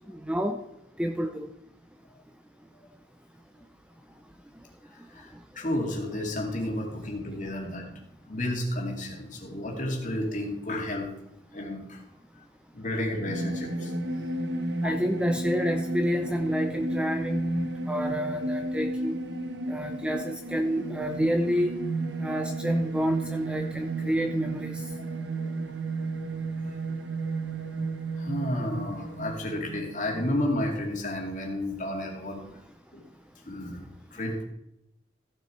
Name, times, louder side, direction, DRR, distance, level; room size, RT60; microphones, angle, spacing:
voice 1, 0.1-0.6 1.0-1.5 14.8-19.2 19.7-21.7 22.2-24.8, equal, 5° right, 6 dB, 0.5 m, -29 dB
voice 2, 5.1-7.9 8.3-11.1 11.5-12.0 12.7-13.9 14.8-15.0 22.3-22.5 22.8-22.9 25.0-25.4 26.6-26.7 28.2-32.4 32.9-33.0 33.5-34.5, left 1 dB, 40° left, 0 dB, 2.5 m, -32 dB
sound 1, 13.2-30.3, right 2 dB, 65° right, 1.0 m, -33 dB
14.5 x 6.9 x 4.5 m, 0.84 s
head